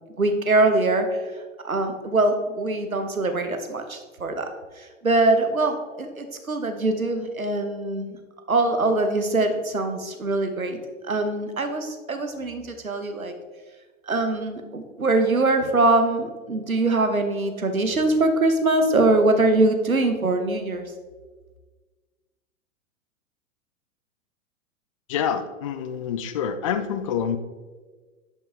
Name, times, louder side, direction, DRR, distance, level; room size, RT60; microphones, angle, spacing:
voice 1, 0.2-1.1 1.6-4.5 4.8-8.2 8.5-10.8 11.1-13.3 14.1-20.9, right 2 dB, 85° right, 6 dB, 1.1 m, -23 dB
voice 2, 25.1-27.4, left 8 dB, 25° left, 11 dB, 0.3 m, -27 dB
10.5 x 5.4 x 3.5 m, 1.4 s
figure-of-eight pair, 105°, 41 cm